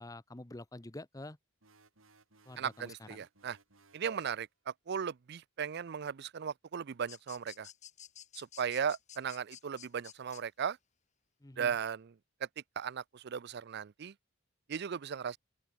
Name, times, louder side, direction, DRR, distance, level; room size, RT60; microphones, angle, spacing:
voice 1, 0.0-1.4 2.5-3.2 11.4-11.8, left 2 dB, 15° left, 0.8 m, -47 dB
sound 1, 1.6-4.5, right 3 dB, 80° right, 6.0 m, -65 dB
voice 2, 2.6-3.6 3.9-7.7 8.4-10.8 11.6-12.1 12.8-14.1 14.7-15.4, right 7 dB, 55° right, 0.4 m, -37 dB
sound 2, 7.1-10.4, left 10 dB, 35° left, 1.4 m, -52 dB
open air
head